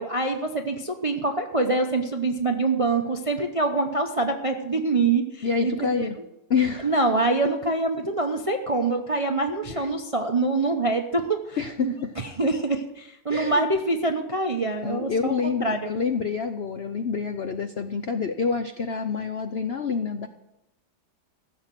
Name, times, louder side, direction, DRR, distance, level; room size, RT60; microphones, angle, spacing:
voice 1, 0.0-6.1 6.8-15.9, right 3 dB, 35° right, 5 dB, 0.5 m, -25 dB
voice 2, 5.4-6.2 6.5-6.9 9.7-9.9 11.6-12.1 12.4-12.5 13.3-13.6 14.8-20.3, left 5 dB, 65° left, 8 dB, 0.6 m, -27 dB
15.5 x 7.4 x 7.5 m, 0.89 s
omnidirectional pair, 1.9 m